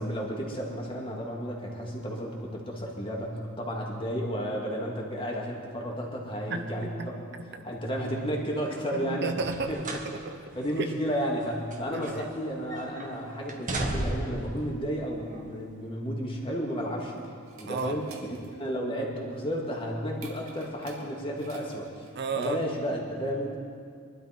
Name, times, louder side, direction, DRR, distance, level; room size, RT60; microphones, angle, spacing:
voice 1, 0.0-7.2 7.6-9.4 9.7-9.8 10.6-17.1 17.6-18.1 18.6-22.1 22.4-23.6, equal, 25° left, -2 dB, 2.4 m, -32 dB
voice 2, 6.5-7.1 7.4-7.6 8.9-10.3 10.8-10.9 11.9-12.3 17.6-18.0 22.1-22.6, right 3 dB, 55° right, 6 dB, 0.9 m, -33 dB
sound 1, 9.4-10.1 10.5-10.7 11.4-12.4 12.7-13.1 13.5-14.4 15.3-15.4, right 1 dB, 40° right, 1.5 m, -34 dB
sound 2, 16.5-22.9, right 2 dB, 80° right, 2.1 m, -51 dB
23.0 x 12.0 x 4.5 m, 2.2 s
head